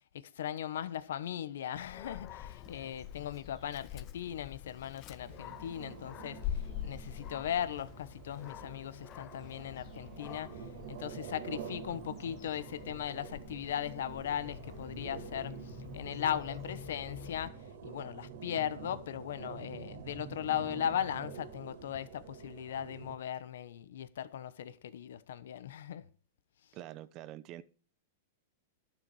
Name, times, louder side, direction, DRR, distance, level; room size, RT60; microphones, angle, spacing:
voice 1, 0.1-17.5 17.8-26.0, left 10 dB, 75° left, 1.1 m, -38 dB
Dog, 1.8-17.5, left 11 dB, 30° left, 0.7 m, -46 dB
Plane Flying Overhead, 5.2-23.2, right 7 dB, 65° right, 2.3 m, -47 dB
voice 2, 26.7-27.6, right 13 dB, 35° right, 0.9 m, -46 dB
12.0 x 7.8 x 4.9 m
supercardioid pair, 150°, 0 cm